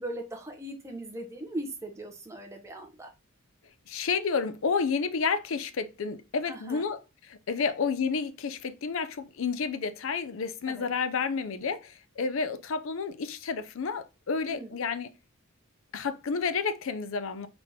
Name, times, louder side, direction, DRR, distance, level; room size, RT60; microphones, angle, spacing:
voice 1, 0.0-3.1 6.5-6.8 7.6-7.7 10.7-10.9 14.5-14.8, right 1 dB, 15° right, 0.8 m, -39 dB
voice 2, 3.9-7.0 7.3-15.1 15.9-17.5, left 5 dB, 70° left, 0.5 m, -30 dB
4.1 x 3.4 x 2.7 m
head